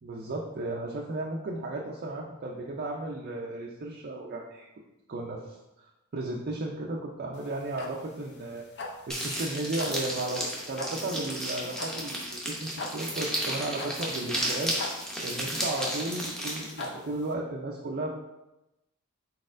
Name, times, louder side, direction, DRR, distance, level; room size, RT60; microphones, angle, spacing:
voice 1, 0.0-4.7 5.1-5.6 5.8-18.1, right 2 dB, 45° right, -1 dB, 0.4 m, -35 dB
sound 1, 7.3-17.3, left 3 dB, 50° left, 0.5 m, -41 dB
sound 2, 9.1-16.9, right 1 dB, 5° left, 0.6 m, -33 dB
4.1 x 4.0 x 2.5 m, 0.96 s
head